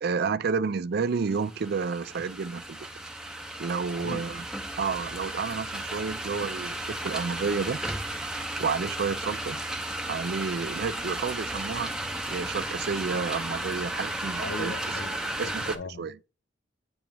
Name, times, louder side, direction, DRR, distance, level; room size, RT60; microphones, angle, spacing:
voice 1, 0.0-2.9 3.6-4.5 4.8-7.8 8.6-9.6 10.0-12.0 12.3-14.7 15.4-16.3, right 5 dB, 60° right, 0.4 m, -30 dB
sound 1, 1.2-15.8, right 1 dB, 5° right, 0.6 m, -34 dB
voice 2, 4.0-4.4 14.0-14.1 14.4-16.0, left 3 dB, 65° left, 0.6 m, -39 dB
8.7 x 3.0 x 5.3 m
head